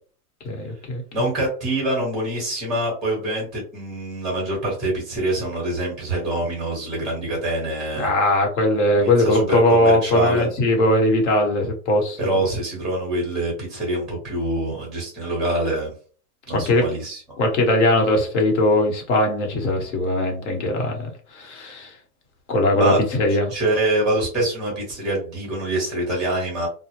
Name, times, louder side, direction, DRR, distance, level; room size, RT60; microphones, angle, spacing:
voice 1, 0.4-1.0 8.0-12.2 16.5-16.8 17.4-21.9 22.5-23.4, left 1 dB, 50° left, 2 dB, 1.1 m, -20 dB
voice 2, 1.1-8.1 9.0-10.5 12.2-15.9 16.5-17.2 22.7-23.0 23.5-26.7, right 1 dB, ahead, -3 dB, 0.8 m, -25 dB
2.1 x 2.1 x 2.9 m, 0.40 s
hypercardioid pair, 140°, 46 cm